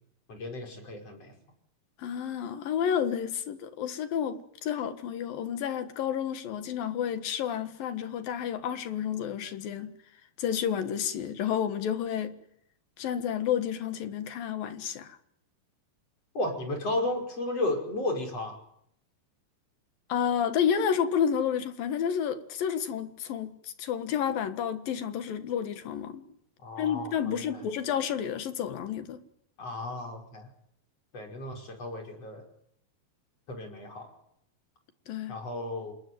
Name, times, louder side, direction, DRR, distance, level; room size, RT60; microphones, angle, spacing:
voice 1, 0.3-1.3 16.3-18.6 26.6-27.6 29.6-30.5 31.1-32.4 33.5-34.1 35.3-35.9, left 2 dB, 45° left, 6.5 m, -34 dB
voice 2, 2.0-10.0 10.4-12.4 13.0-15.2 20.1-26.2 26.8-29.2 35.1-35.4, left 8 dB, 75° left, 3.4 m, -30 dB
27.5 x 20.5 x 9.5 m
omnidirectional pair, 4.1 m